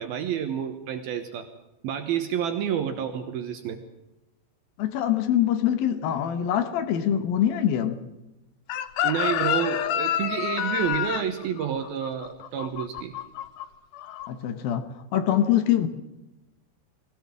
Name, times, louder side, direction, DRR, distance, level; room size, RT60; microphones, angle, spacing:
voice 1, 0.0-1.5 1.8-3.8 9.0-13.2, right 9 dB, 70° right, 2.7 m, -29 dB
voice 2, 4.8-8.0 14.3-15.9, left 10 dB, 65° left, 2.7 m, -24 dB
Chicken rooster, 8.7-13.6 13.9-14.3, left 11 dB, 85° left, 1.8 m, -28 dB
21.5 x 17.0 x 7.5 m
omnidirectional pair, 5.0 m